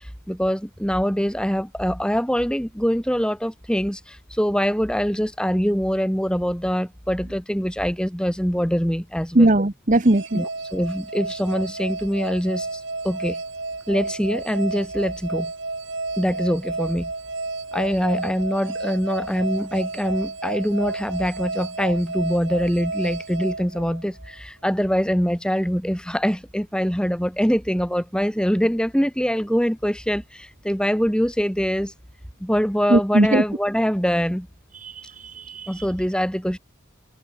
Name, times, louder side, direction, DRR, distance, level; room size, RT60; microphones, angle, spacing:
voice 1, 0.0-9.5 10.3-13.4 13.9-15.5 16.2-17.1 17.7-31.9 32.4-34.5 35.7-36.6, equal, 5° left, 4.8 m, -24 dB
voice 2, 9.4-10.4 32.9-33.4 34.8-35.7, right 1 dB, 35° right, 1.0 m, -19 dB
sound 1, 10.0-24.4, right 3 dB, 55° right, 4.7 m, -31 dB
head